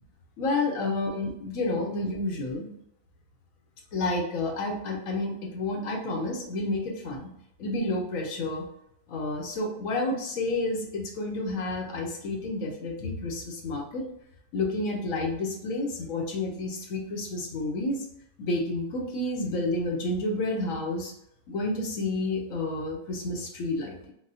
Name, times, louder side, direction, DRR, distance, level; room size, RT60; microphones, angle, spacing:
voice 1, 0.4-2.7 3.9-7.3 7.6-8.7 9.1-14.1 14.5-18.1 18.4-21.1 21.5-24.1, left 2 dB, 80° left, 1 dB, 1.1 m, -30 dB
4.0 x 2.2 x 2.6 m, 0.77 s
omnidirectional pair, 1.4 m